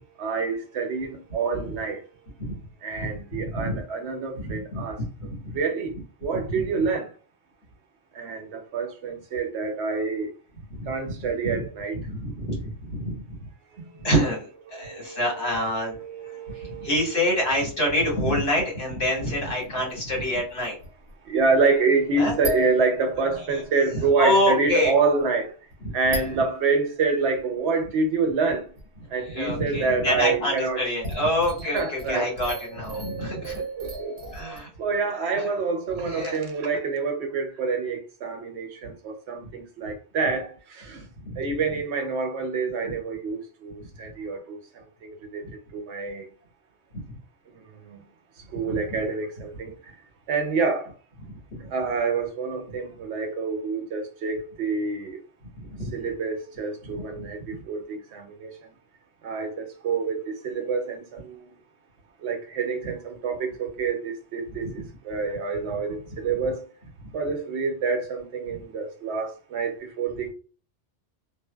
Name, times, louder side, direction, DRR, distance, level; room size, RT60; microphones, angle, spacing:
voice 1, 0.2-2.0 2.8-5.9 6.2-7.1 8.1-10.3 10.9-12.0 13.8-14.1 14.7-17.4 21.3-25.5 25.9-28.7 29.1-30.8 31.7-32.3 33.5-34.3 34.8-41.0 41.4-45.4 45.7-46.3 47.5-48.0 48.5-49.7 50.3-50.9 51.7-55.2 55.9-58.7 59.2-61.5 62.2-66.7 67.1-70.3, right 4 dB, 75° right, 0.9 m, -27 dB
voice 2, 3.4-3.8 4.4-5.5 6.5-6.6 10.7-10.9 11.4-11.7 11.9-12.6 12.9-13.4 14.0-16.0 16.3-20.8 22.1-22.3 23.5-23.6 24.2-24.9 25.8-25.9 29.3-33.6 34.3-34.7 36.1-36.4 41.3-41.4 45.4-45.5 48.6-48.8 51.3-51.6 55.7-55.9 56.8-57.2, left 1 dB, 60° left, 1.5 m, -26 dB
sound 1, 19.8-19.9 20.5-21.4 22.4-23.8 25.2-25.3 25.7-25.8 26.1-26.8 28.8-28.9 29.8-29.9 31.0-34.6, equal, 30° right, 0.7 m, -35 dB
2.6 x 2.1 x 2.2 m
omnidirectional pair, 1.2 m